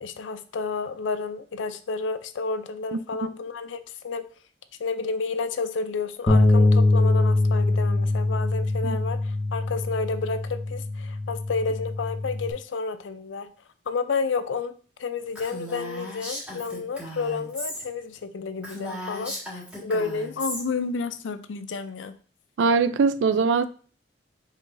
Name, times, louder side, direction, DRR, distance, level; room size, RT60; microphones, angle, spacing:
voice 1, 0.0-4.3 4.8-13.5 13.9-22.1, left 4 dB, 85° left, 0.4 m, -31 dB
voice 2, 2.9-3.3 8.8-9.0 22.6-23.7, right 5 dB, 80° right, 0.4 m, -22 dB
Bass guitar, 6.3-12.5, left 2 dB, 25° left, 0.5 m, -23 dB
Female speech woman speaking, 15.3-17.8 18.2-18.3 18.6-20.6, equal, 5° right, 1.7 m, -36 dB
5.0 x 3.9 x 2.6 m
head